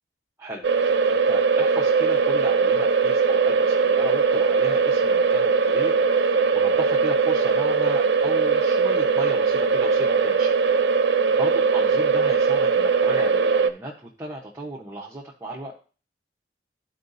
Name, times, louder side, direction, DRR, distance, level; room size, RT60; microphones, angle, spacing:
voice 1, 0.4-10.6 11.4-15.7, right 1 dB, 15° right, -3 dB, 1.0 m, -36 dB
sound 1, 0.6-13.7, right 5 dB, 75° right, 0.6 m, -20 dB
13.0 x 4.8 x 2.6 m, 0.38 s
head